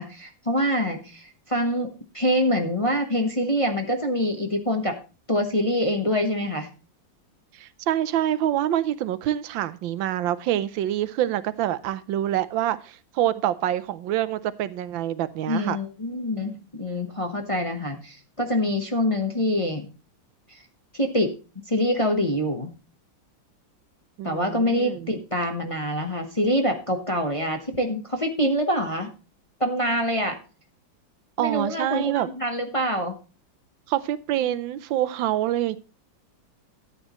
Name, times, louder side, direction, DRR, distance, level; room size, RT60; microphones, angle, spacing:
voice 1, 0.0-5.0 5.3-6.7 15.5-19.9 20.5-20.6 20.9-21.4 21.7-22.7 24.2-29.1 29.6-30.4 31.4-33.2, equal, 25° left, 0.8 m, -25 dB
voice 2, 7.5-15.8 24.2-25.1 31.4-32.3 33.9-35.8, right 12 dB, 85° right, 1.5 m, -26 dB
13.0 x 8.7 x 3.0 m
omnidirectional pair, 2.1 m